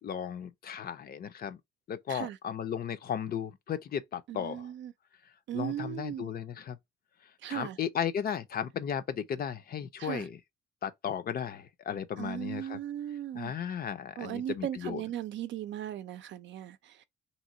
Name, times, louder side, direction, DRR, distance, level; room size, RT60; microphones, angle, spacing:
voice 1, 0.0-1.6 1.9-4.7 5.5-6.8 7.5-10.4 10.8-12.8 13.4-15.0, left 8 dB, 50° left, 0.6 m, -35 dB
voice 2, 4.3-4.9 5.5-6.3 7.4-7.8 10.0-10.3 12.2-13.5 14.2-17.0, right 11 dB, 70° right, 0.5 m, -37 dB
3.0 x 2.8 x 2.6 m
cardioid pair, 90°, 20 cm